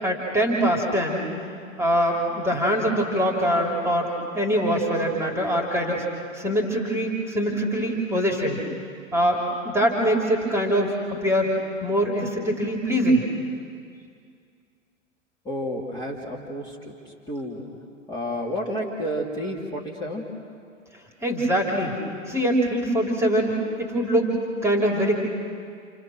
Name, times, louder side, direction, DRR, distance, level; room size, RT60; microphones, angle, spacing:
voice 1, 0.0-1.3 1.8-6.1 6.3-8.6 9.1-10.9 11.2-11.5 11.8-13.2 21.2-22.0 22.3-24.3 24.6-25.2, equal, 5° right, 0 dB, 3.7 m, -23 dB
voice 2, 15.5-16.9 17.3-17.6 18.1-20.2, equal, 10° left, -4 dB, 3.4 m, -30 dB
29.0 x 29.0 x 6.6 m, 2.3 s
figure-of-eight pair, 110°, 39 cm